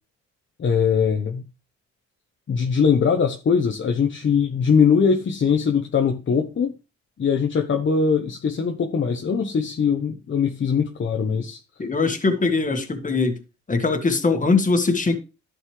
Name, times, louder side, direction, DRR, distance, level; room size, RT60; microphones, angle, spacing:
voice 1, 0.6-1.4 2.5-6.7 7.2-11.6, left 6 dB, 40° left, 1.0 m, -21 dB
voice 2, 11.8-13.4 13.7-15.2, left 3 dB, 25° left, 1.8 m, -21 dB
11.0 x 6.5 x 3.3 m
cardioid pair, 90°, 30 cm